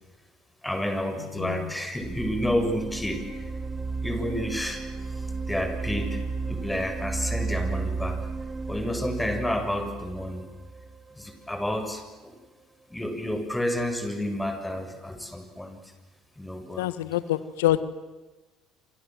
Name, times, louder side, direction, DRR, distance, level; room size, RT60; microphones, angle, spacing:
voice 1, 0.6-3.5 4.0-8.2 8.7-10.4 11.1-12.4 12.9-15.8 16.4-16.9, left 1 dB, 10° left, 7 dB, 7.1 m, -30 dB
voice 2, 1.2-1.7 16.8-17.8, left 14 dB, 80° left, 14 dB, 1.6 m, -26 dB
sound 1, 2.0-11.8, right 4 dB, 20° right, 3.5 m, -33 dB
28.0 x 27.5 x 7.7 m, 1.2 s
hypercardioid pair, 70°, 0 cm